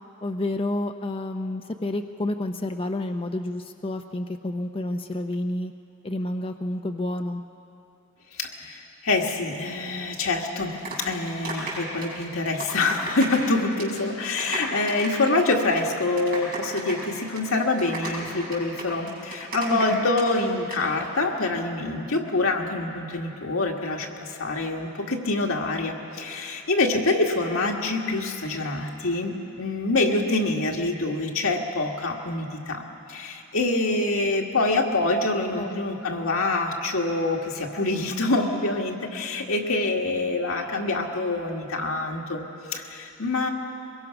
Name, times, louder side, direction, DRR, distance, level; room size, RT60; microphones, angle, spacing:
voice 1, 0.2-5.7 6.0-7.4 19.7-20.1 35.5-36.1, left 1 dB, 25° left, 6 dB, 0.5 m, -30 dB
voice 2, 8.3-43.5, left 2 dB, 85° left, 1 dB, 1.9 m, -26 dB
sound 1, 10.5-13.5 13.7-14.0 14.2-20.3 20.5-20.8, right 2 dB, 45° right, 6.8 m, -34 dB
23.0 x 21.5 x 5.9 m, 2.8 s
head